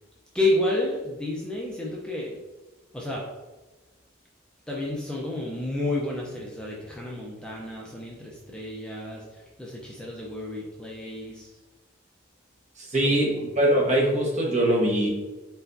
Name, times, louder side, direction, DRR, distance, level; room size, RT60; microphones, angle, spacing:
voice 1, 0.3-2.4 2.9-3.2 4.7-11.5 13.0-13.4, left 1 dB, 5° left, -4 dB, 0.5 m, -30 dB
voice 2, 12.8-15.1, right 1 dB, 35° right, -2 dB, 1.1 m, -22 dB
4.5 x 4.3 x 2.6 m, 1.2 s
head